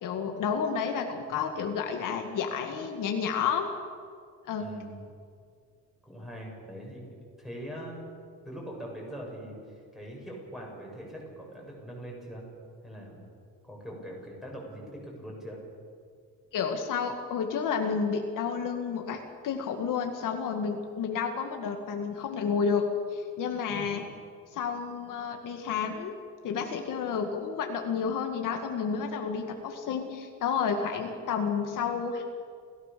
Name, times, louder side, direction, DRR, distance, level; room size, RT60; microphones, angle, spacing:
voice 1, 0.0-3.7 4.4-4.7 16.5-19.2 19.4-22.8 23.1-24.0 24.5-26.1 26.4-32.2, left 6 dB, 65° left, 4 dB, 2.1 m, -30 dB
voice 2, 4.6-5.0 6.0-7.1 7.4-8.0 8.4-12.4 12.8-13.2 13.6-15.6 23.7-23.9, equal, ahead, -2 dB, 6.8 m, -42 dB
29.5 x 16.0 x 6.9 m, 2.1 s
cardioid pair, 160°, 34 cm